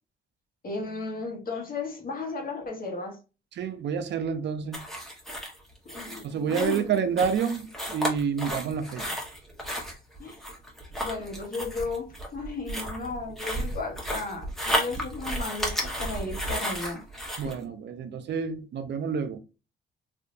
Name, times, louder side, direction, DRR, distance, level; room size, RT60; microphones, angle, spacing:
voice 1, 0.6-3.2 5.8-7.1 10.2-10.4 11.0-17.0 17.4-17.5, left 3 dB, 45° left, 1.3 m, -35 dB
voice 2, 3.5-4.8 6.2-9.1 17.4-19.4, right 6 dB, 60° right, 0.6 m, -29 dB
sound 1, 4.7-17.6, equal, ahead, 1.2 m, -33 dB
3.5 x 2.6 x 2.6 m
cardioid pair, 90°, 20 cm